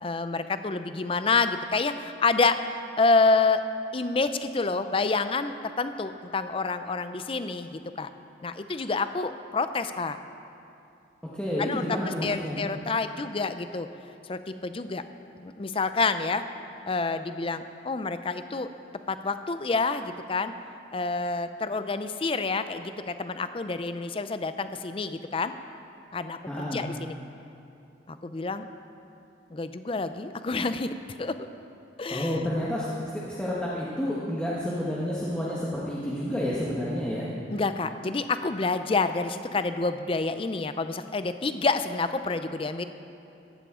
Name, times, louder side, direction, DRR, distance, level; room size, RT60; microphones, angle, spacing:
voice 1, 0.0-3.6 3.9-8.1 8.4-10.2 11.6-13.9 14.3-15.0 15.4-16.4 16.9-18.7 19.1-20.5 20.9-25.5 26.1-27.2 28.1-28.7 29.5-31.5 32.0-32.5 37.5-42.8, left 3 dB, 30° left, 10 dB, 0.5 m, -28 dB
voice 2, 11.3-12.6 26.5-26.9 32.1-32.9 33.1-37.3, equal, 5° left, -7 dB, 1.3 m, -30 dB
15.5 x 13.5 x 3.8 m, 2.7 s
head